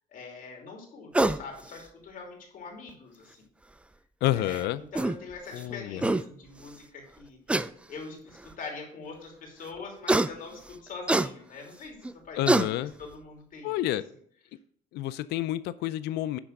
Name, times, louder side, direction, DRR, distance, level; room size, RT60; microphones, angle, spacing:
voice 1, 0.1-3.5 4.3-4.6 4.9-7.6 7.9-12.4 13.0-13.8, left 4 dB, 55° left, 1 dB, 2.8 m, -43 dB
sound 1, 1.1-1.4 2.9-3.0 4.5-4.6 4.9-5.2 5.7-5.8 6.0-6.2 7.5-7.7 8.5-8.6 10.1-10.3 11.1-11.3 12.0-12.1 12.5-12.7, right 2 dB, 5° right, 0.3 m, -23 dB
voice 2, 4.2-4.8 5.5-6.1 12.4-12.9 13.6-14.0 14.9-16.4, left 14 dB, 80° left, 15 dB, 0.4 m, -29 dB
9.8 x 3.4 x 6.3 m, 0.62 s
cardioid pair, 110°, 17 cm